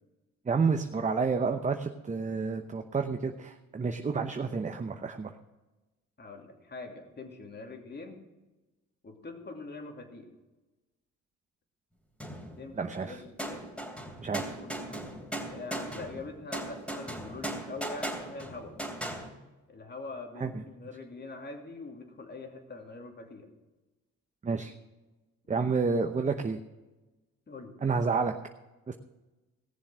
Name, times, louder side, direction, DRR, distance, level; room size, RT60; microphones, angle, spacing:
voice 1, 0.5-5.3 12.8-13.2 14.2-14.5 20.4-20.6 24.4-24.7 25.5-26.6 27.8-28.3 28.9-29.0, right 4 dB, 25° right, 6 dB, 0.8 m, -30 dB
voice 2, 6.2-8.2 9.0-10.3 12.5-13.6 14.6-15.2 15.5-18.7 19.7-23.5 25.4-25.7 27.5-27.8, left 3 dB, 35° left, 3 dB, 2.7 m, -43 dB
sound 1, 12.2-12.9 13.4-19.3, right 1 dB, 5° left, 3.1 m, -38 dB
17.5 x 7.1 x 6.2 m, 1.1 s
cardioid pair, 90°, 30 cm